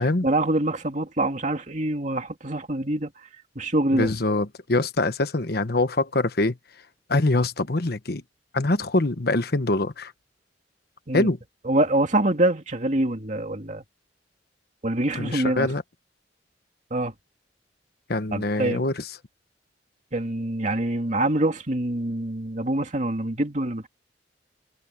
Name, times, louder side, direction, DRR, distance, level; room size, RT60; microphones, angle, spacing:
voice 1, 0.2-3.1 3.6-4.1 11.1-11.3 11.7-13.8 14.8-15.7 16.9-17.1 18.3-18.8 20.1-23.9, right 1 dB, 40° right, 2.6 m, -25 dB
voice 2, 3.9-6.6 7.1-8.2 8.5-10.1 11.1-11.4 15.1-15.8 18.1-19.1, left 2 dB, 55° left, 1.2 m, -24 dB
head